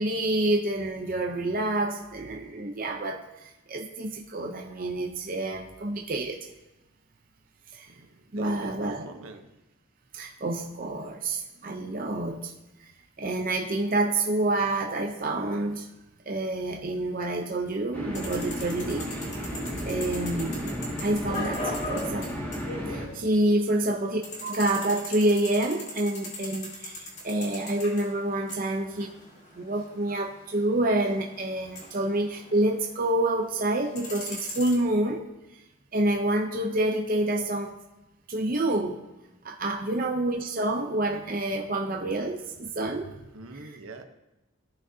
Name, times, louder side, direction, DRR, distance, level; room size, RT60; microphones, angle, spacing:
voice 1, 0.0-6.4 7.7-7.9 8.3-9.1 10.1-12.5 12.8-12.9 13.2-15.9 16.3-19.1 19.5-20.7 21.0-22.3 22.9-29.1 29.5-35.2 35.9-37.7 38.3-39.0 39.4-43.2, right 1 dB, 40° right, 1 dB, 0.7 m, -28 dB
voice 2, 7.9-9.5 23.7-23.9 39.9-40.1 43.3-44.0, right 2 dB, 70° right, 6 dB, 0.9 m, -44 dB
sound 1, 17.9-23.1, equal, 10° left, 1.9 m, -33 dB
sound 2, 18.1-23.6 23.8-33.2 33.6-34.7, left 1 dB, 35° left, 2.1 m, -40 dB
14.5 x 6.2 x 2.8 m, 1.0 s
head